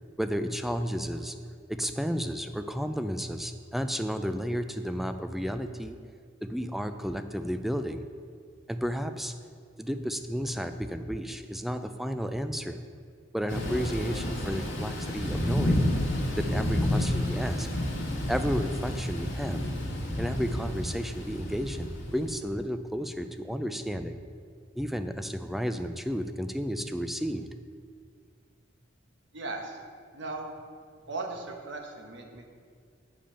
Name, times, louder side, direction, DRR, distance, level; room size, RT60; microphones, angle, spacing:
voice 1, 0.2-1.3 1.7-6.0 6.4-8.1 8.7-9.3 9.8-12.8 13.3-15.9 16.3-17.7 18.3-19.6 20.2-24.2 24.8-27.6, equal, ahead, 8 dB, 0.3 m, -32 dB
Thunder / Rain, 13.5-22.3, left 1 dB, 75° left, 1.7 m, -30 dB
voice 2, 29.3-29.8 30.1-30.5 31.1-32.5, right 3 dB, 65° right, 2 dB, 1.0 m, -37 dB
8.7 x 5.1 x 5.6 m, 2.1 s
head